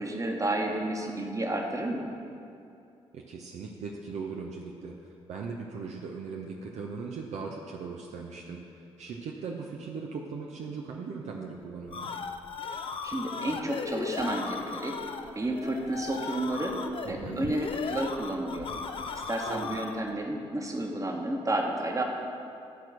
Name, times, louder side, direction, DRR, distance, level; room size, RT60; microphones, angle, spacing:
voice 1, 0.0-2.1 13.0-15.0 15.3-16.8 17.1-18.7 19.3-22.0, right 1 dB, 25° right, 1 dB, 1.3 m, -31 dB
voice 2, 3.1-4.9 5.3-8.6 9.0-12.1 17.0-17.5 19.5-19.8, right 5 dB, 55° right, 0 dB, 0.7 m, -39 dB
sound 1, 11.6-20.1, left 5 dB, 40° left, 0.5 m, -37 dB
11.5 x 4.5 x 6.1 m, 2.7 s
figure-of-eight pair, 40°, 14 cm